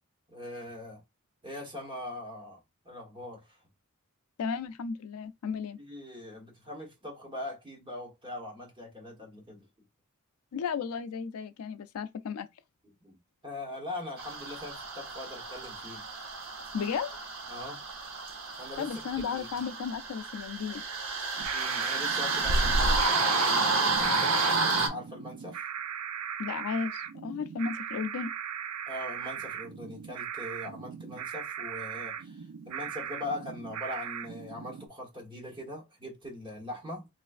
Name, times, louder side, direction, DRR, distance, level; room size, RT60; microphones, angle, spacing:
voice 1, 0.3-1.0 1.4-3.6 5.8-9.7 13.0-16.0 17.5-17.8 18.6-18.9 19.2-19.5 21.5-24.6 24.9-25.7 28.9-37.1, left 1 dB, 20° right, 1.1 m, -41 dB
voice 2, 4.4-5.8 10.5-12.5 16.7-17.2 18.8-20.8 26.4-28.3, left 6 dB, 75° left, 0.4 m, -34 dB
sound 1, 14.2-24.9, right 3 dB, 60° right, 0.9 m, -30 dB
sound 2, 21.4-34.9, right 4 dB, 85° right, 0.4 m, -36 dB
3.2 x 3.1 x 2.4 m
head